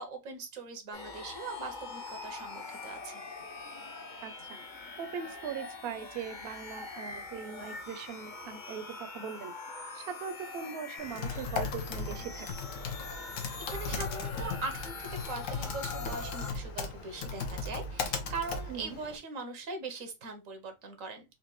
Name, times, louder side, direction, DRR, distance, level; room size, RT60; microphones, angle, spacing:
voice 1, 0.0-3.2 13.1-21.2, right 3 dB, 90° right, 1.3 m, -41 dB
sound 1, 0.9-16.5, left 4 dB, 45° left, 0.8 m, -44 dB
voice 2, 4.2-4.6 5.0-9.5 9.9-12.5 18.7-19.0, right 7 dB, 60° right, 0.8 m, -40 dB
Typing, 11.0-19.2, left 4 dB, 85° left, 1.1 m, -37 dB
4.3 x 2.5 x 3.0 m
omnidirectional pair, 1.3 m